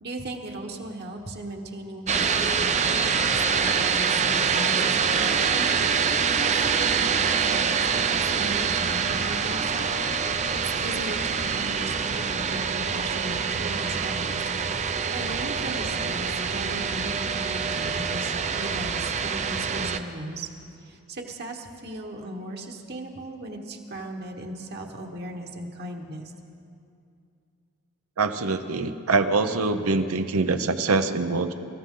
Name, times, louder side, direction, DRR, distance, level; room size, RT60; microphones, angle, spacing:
voice 1, 0.0-10.1 10.5-14.4 14.8-20.5 20.8-26.3, right 1 dB, 50° right, 1 dB, 1.4 m, -37 dB
sound 1, 2.1-20.0, right 6 dB, 35° right, 0.5 m, -25 dB
voice 2, 28.2-31.5, right 3 dB, 80° right, 8 dB, 0.8 m, -24 dB
25.0 x 14.0 x 3.9 m, 2.5 s
head